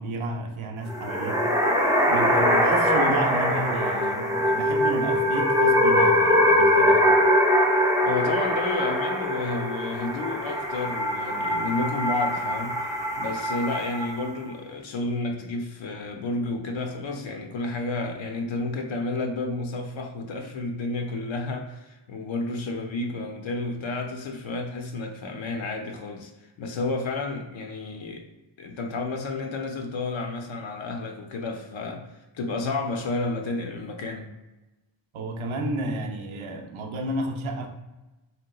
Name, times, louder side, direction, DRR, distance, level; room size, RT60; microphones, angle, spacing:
voice 1, 0.0-1.6 2.1-7.2 35.1-37.7, right 2 dB, 75° right, 3 dB, 0.6 m, -31 dB
sound 1, 0.9-14.3, equal, 10° right, 0.3 m, -22 dB
voice 2, 8.0-12.7 13.2-28.2 28.6-32.1 32.3-34.3, left 3 dB, 70° left, 3 dB, 0.5 m, -31 dB
3.3 x 2.8 x 2.2 m, 1.1 s
wide cardioid pair, 80°, 49 cm